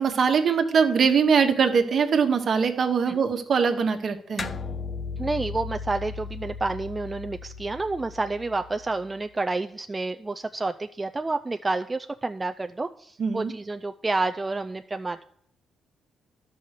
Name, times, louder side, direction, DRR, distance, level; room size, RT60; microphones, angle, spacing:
voice 1, 0.0-4.5 13.2-13.5, right 6 dB, 50° right, 6 dB, 1.2 m, -22 dB
sound 1, 4.4-9.1, left 5 dB, 35° left, 0.7 m, -36 dB
voice 2, 5.2-15.2, right 3 dB, 20° right, 7 dB, 0.4 m, -29 dB
11.5 x 5.5 x 6.5 m, 0.68 s
cardioid pair, 90°, 0 cm